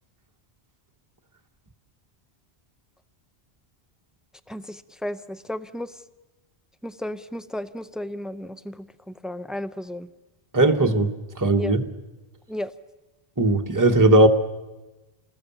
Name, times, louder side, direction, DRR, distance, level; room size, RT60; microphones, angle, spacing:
voice 1, 4.5-5.9 6.8-10.1 11.6-11.7 12.5-12.7, left 1 dB, ahead, 13 dB, 0.5 m, -34 dB
voice 2, 10.5-11.1 11.4-11.8 13.4-14.3, right 2 dB, 20° right, 4 dB, 1.2 m, -18 dB
28.5 x 20.0 x 7.0 m, 1.1 s
omnidirectional pair, 1.1 m